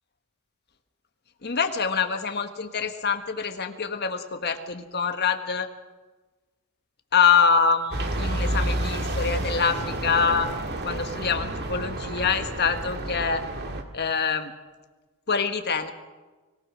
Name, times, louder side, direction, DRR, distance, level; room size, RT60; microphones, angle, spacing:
voice 1, 1.4-5.7 7.1-10.5 10.8-13.4 13.9-14.5 15.3-15.9, left 6 dB, 45° left, 7 dB, 1.5 m, -25 dB
sound 1, 7.9-13.8, right 1 dB, 50° right, 2.0 m, -30 dB
24.5 x 18.5 x 6.2 m, 1.3 s
head